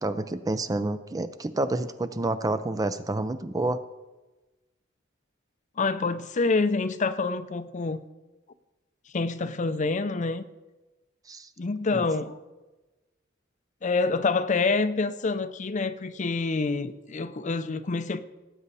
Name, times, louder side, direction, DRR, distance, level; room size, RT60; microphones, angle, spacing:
voice 1, 0.0-3.8 11.3-11.5 11.9-12.0, right 2 dB, 20° right, 0.4 m, -29 dB
voice 2, 5.8-8.0 9.1-10.4 11.6-12.4 13.8-18.2, left 3 dB, 40° left, 0.5 m, -27 dB
18.0 x 8.3 x 4.1 m
head